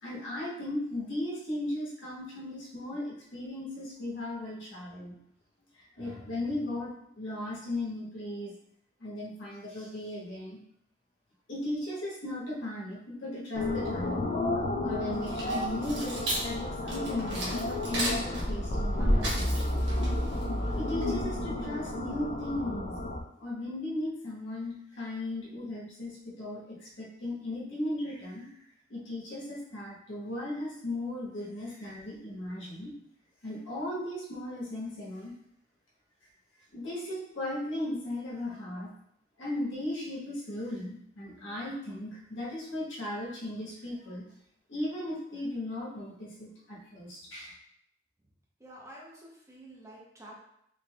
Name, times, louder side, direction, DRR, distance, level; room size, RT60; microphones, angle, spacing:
voice 1, 0.0-5.2 5.8-8.5 9.0-10.6 11.5-14.3 14.8-19.6 20.7-22.9 23.4-28.5 28.9-32.9 33.4-35.3 36.7-38.9 39.4-44.2 44.7-47.5, left 1 dB, 85° left, -5 dB, 1.2 m, -36 dB
sound 1, 13.5-23.2, left 2 dB, 40° left, 0.4 m, -34 dB
sound 2, 15.1-21.7, equal, 75° right, 1.3 m, -31 dB
voice 2, 48.6-50.4, right 1 dB, 15° right, -4 dB, 0.7 m, -49 dB
3.6 x 3.4 x 2.4 m, 0.74 s
head